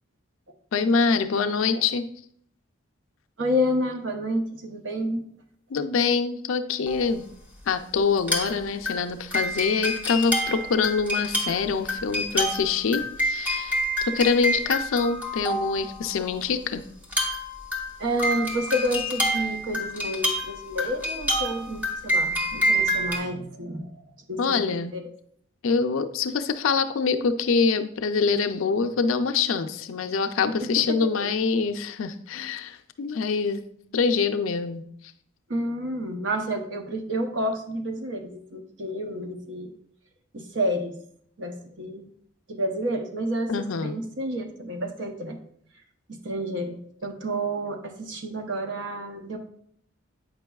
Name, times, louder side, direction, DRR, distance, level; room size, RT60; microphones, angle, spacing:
voice 1, 0.7-2.1 5.7-7.3 7.7-13.8 14.1-16.8 24.4-24.9 25.6-33.6 33.9-34.8 43.5-44.0, left 5 dB, 80° left, 8 dB, 0.4 m, -25 dB
voice 2, 3.4-5.2 18.0-24.0 24.3-25.0 30.6-31.0 35.5-39.7 40.3-40.9 41.4-42.1 42.5-45.4 46.1-49.4, equal, 60° right, 4 dB, 0.7 m, -29 dB
sound 1, 6.9-7.0 8.2-8.6 8.9-16.1 17.0-23.2, equal, 10° right, 1.0 m, -27 dB
8.0 x 5.3 x 2.3 m, 0.66 s
head